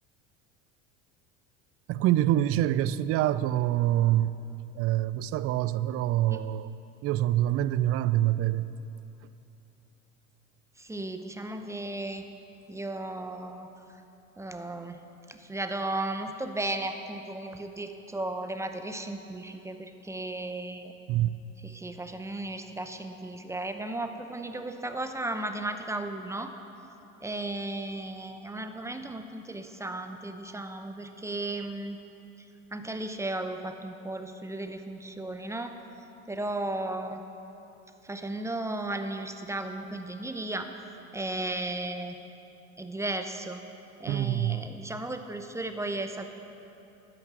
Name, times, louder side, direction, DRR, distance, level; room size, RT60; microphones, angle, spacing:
voice 1, 1.9-4.4 4.8-6.7 7.0-8.7 21.1-21.3 44.1-44.6, right 13 dB, 35° right, 0.4 m, -25 dB
voice 2, 10.8-12.3 12.7-13.7 14.4-15.0 15.3-20.9 21.6-26.5 27.2-32.0 32.7-35.8 36.3-37.2 38.0-40.7 41.1-42.2 42.8-43.6 44.0-46.3, right 2 dB, 5° right, 0.8 m, -35 dB
12.0 x 9.1 x 6.2 m
hypercardioid pair, 85°, 40 cm